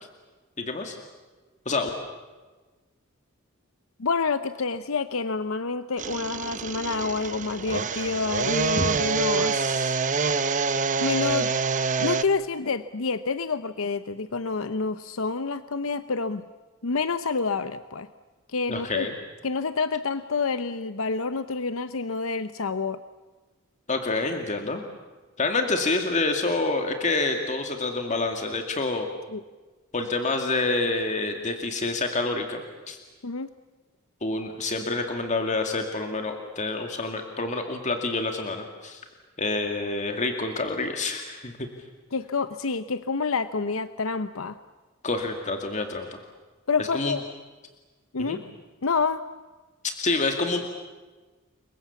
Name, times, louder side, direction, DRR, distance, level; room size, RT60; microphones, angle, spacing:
voice 1, 0.6-1.0 1.7-1.9 8.8-8.9 18.7-19.2 23.9-24.8 25.4-29.1 29.9-33.0 34.2-39.0 39.4-41.7 45.0-46.2 46.8-47.2 48.2-48.4 50.0-50.6, left 3 dB, 35° left, 4 dB, 2.3 m, -27 dB
voice 2, 4.0-9.9 10.3-10.7 11.0-11.5 12.0-16.4 16.8-18.1 18.5-19.1 19.4-23.0 29.3-29.4 33.2-33.5 42.1-44.6 46.7-47.2 48.1-48.4 48.8-49.2, left 4 dB, 85° left, 12 dB, 0.8 m, -28 dB
sound 1, 6.0-12.2, right 5 dB, 40° right, 1.0 m, -26 dB
29.5 x 23.0 x 7.2 m, 1.3 s
head